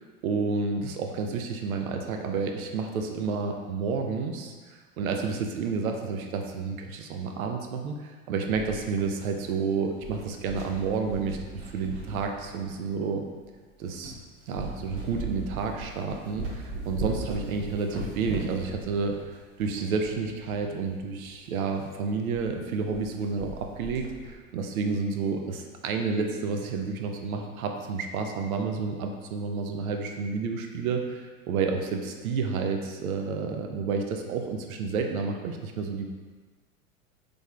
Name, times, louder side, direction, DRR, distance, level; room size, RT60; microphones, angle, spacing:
voice 1, 0.0-11.4 11.7-13.3 13.8-14.1 14.5-19.2 19.6-36.1, right 4 dB, 80° right, 4 dB, 0.6 m, -30 dB
sound 1, 8.5-9.7 10.0-13.0 13.5-13.6 14.0-14.2 14.5-20.6 20.9-21.0 21.2-21.3 21.7-21.9 22.3-22.5 22.7-23.1 23.4-24.3, right 2 dB, 50° right, 0.9 m, -38 dB
3.8 x 3.3 x 2.3 m, 1.4 s
hypercardioid pair, 95°, 42 cm